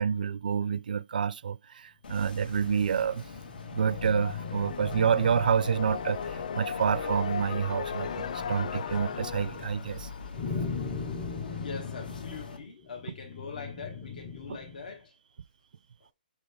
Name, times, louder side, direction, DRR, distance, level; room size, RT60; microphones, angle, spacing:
voice 1, 0.0-3.2 3.7-6.2 6.5-10.1 14.5-14.6, right 7 dB, 65° right, 0.4 m, -28 dB
sound 1, 2.0-12.6, left 3 dB, 75° left, 1.8 m, -45 dB
sound 2, 2.5-14.9, left 5 dB, 15° left, 0.7 m, -40 dB
sound 3, 3.3-11.0, left 7 dB, 45° left, 0.4 m, -37 dB
voice 2, 11.3-15.1, left 5 dB, 60° left, 1.2 m, -42 dB
6.3 x 3.4 x 4.7 m
hypercardioid pair, 180°, 5 cm